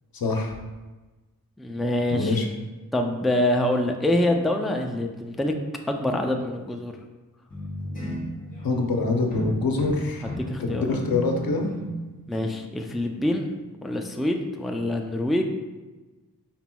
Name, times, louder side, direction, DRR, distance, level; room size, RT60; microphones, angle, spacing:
voice 1, 0.2-0.5 2.1-2.5 8.6-10.3 10.6-11.6, left 3 dB, 80° left, 3 dB, 0.7 m, -25 dB
voice 2, 1.6-2.4 2.9-5.5 5.9-6.9 10.2-11.0 12.3-13.5 13.8-15.4, left 1 dB, ahead, 3 dB, 0.3 m, -25 dB
sound 1, 7.5-12.1 12.3-12.7, equal, 25° left, 1.1 m, -35 dB
5.8 x 4.0 x 2.2 m, 1.2 s
wide cardioid pair, 110°, 35 cm